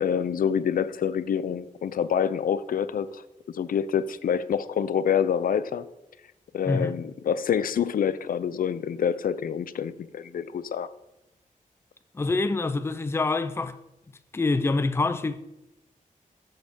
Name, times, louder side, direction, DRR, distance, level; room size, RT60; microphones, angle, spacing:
voice 1, 0.0-3.2 3.5-5.8 6.5-10.9, left 8 dB, 85° left, 0.4 m, -27 dB
voice 2, 12.1-13.8 14.3-15.4, left 3 dB, 20° left, 0.3 m, -26 dB
7.7 x 3.4 x 6.5 m
wide cardioid pair, 125°, 14 cm